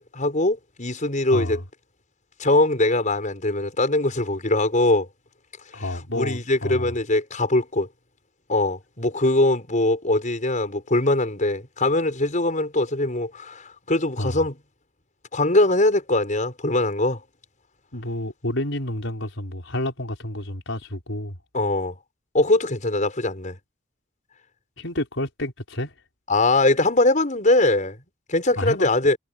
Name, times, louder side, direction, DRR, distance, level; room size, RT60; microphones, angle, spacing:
voice 1, 0.0-1.6 2.4-5.1 5.7-5.8 6.1-7.9 8.5-14.5 15.3-17.2 21.5-21.9 22.3-23.6 26.3-28.0 28.3-29.2, left 2 dB, 40° left, 5.8 m, -22 dB
voice 2, 1.3-1.6 5.7-6.9 14.2-14.4 17.9-21.4 24.8-25.9 28.6-28.9, left 1 dB, 85° left, 5.1 m, -29 dB
head